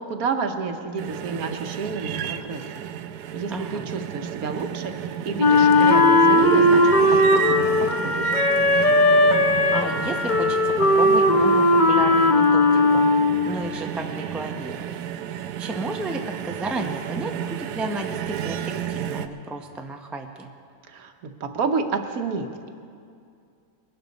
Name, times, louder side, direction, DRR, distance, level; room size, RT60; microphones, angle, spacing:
voice 1, 0.0-2.6 3.3-8.2 20.9-22.7, right 5 dB, 70° right, 6 dB, 1.3 m, -30 dB
sound 1, 1.0-19.3, right 9 dB, 85° right, 1.2 m, -32 dB
voice 2, 3.5-3.9 9.7-14.9 15.6-20.5, right 2 dB, ahead, 3 dB, 0.4 m, -33 dB
Wind instrument woodwind instrument, 5.4-13.6, left 1 dB, 35° left, 0.9 m, -18 dB
21.5 x 11.5 x 4.0 m, 2.4 s
omnidirectional pair, 1.6 m